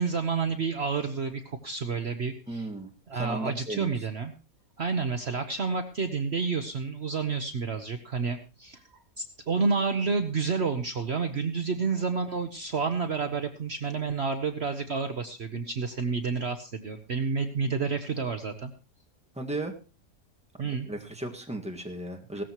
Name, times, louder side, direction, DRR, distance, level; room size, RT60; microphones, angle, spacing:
voice 1, 0.0-2.7 3.1-4.3 4.8-8.8 9.2-18.7 20.6-20.9, right 5 dB, 50° right, 7 dB, 1.1 m, -30 dB
voice 2, 2.5-3.9 19.3-19.7 20.7-22.4, right 2 dB, 5° right, 2 dB, 1.6 m, -35 dB
17.5 x 13.5 x 3.0 m, 0.33 s
omnidirectional pair, 1.5 m